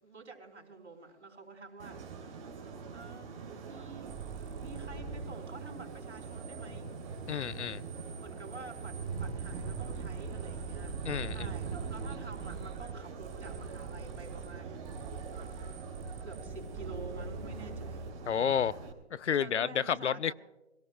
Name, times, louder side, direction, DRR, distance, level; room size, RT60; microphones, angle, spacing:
voice 1, 0.0-2.0 2.9-4.1 4.6-6.9 8.2-14.9 16.2-18.1 19.3-20.3, right 4 dB, 80° right, 4.4 m, -49 dB
sound 1, 1.8-18.9, right 5 dB, 30° right, 3.1 m, -43 dB
sound 2, 4.1-5.3 5.6-12.9 13.2-14.5 14.8-18.1, right 4 dB, 15° right, 1.4 m, -45 dB
voice 2, 7.3-7.8 11.0-11.5 18.3-18.8 19.1-20.3, left 8 dB, 85° left, 0.6 m, -30 dB
25.0 x 18.0 x 2.2 m
hypercardioid pair, 150°, 34 cm